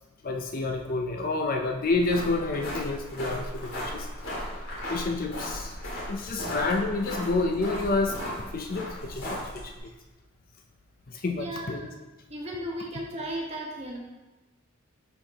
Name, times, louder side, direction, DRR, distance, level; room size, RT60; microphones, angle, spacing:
voice 1, 0.2-4.1 4.9-5.7 6.1-8.2 8.5-9.3 9.5-9.7 11.1-11.9, left 3 dB, 40° left, 3 dB, 0.5 m, -29 dB
sound 1, 1.9-9.8, equal, 85° left, 2.4 m, -36 dB
voice 2, 11.3-11.9 12.3-14.0, right 1 dB, 30° right, -2 dB, 1.3 m, -35 dB
10.5 x 4.4 x 2.9 m, 1.1 s
head